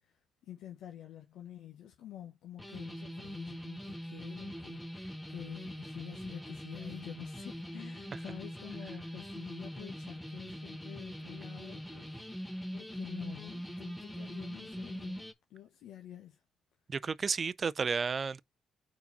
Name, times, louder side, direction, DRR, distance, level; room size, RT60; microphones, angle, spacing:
voice 1, 0.0-16.4, left 11 dB, 85° left, 0.9 m, -49 dB
sound 1, 2.6-15.3, equal, 5° left, 1.1 m, -42 dB
voice 2, 16.9-18.4, right 5 dB, 40° right, 0.4 m, -32 dB
4.7 x 4.1 x 5.4 m
cardioid pair, 90°, 0 cm